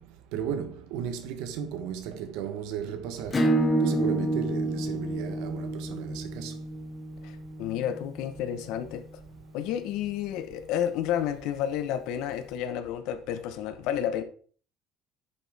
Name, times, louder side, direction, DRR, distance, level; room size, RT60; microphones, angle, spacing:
voice 1, 0.3-3.4 3.8-6.5, right 8 dB, 85° right, 1.3 m, -35 dB
Acoustic guitar / Strum, 3.3-8.6, right 1 dB, 20° left, 1.5 m, -29 dB
voice 2, 7.2-9.2 9.5-14.2, left 10 dB, 70° left, 1.2 m, -31 dB
10.0 x 6.9 x 3.6 m
cardioid pair, 160°, 0 cm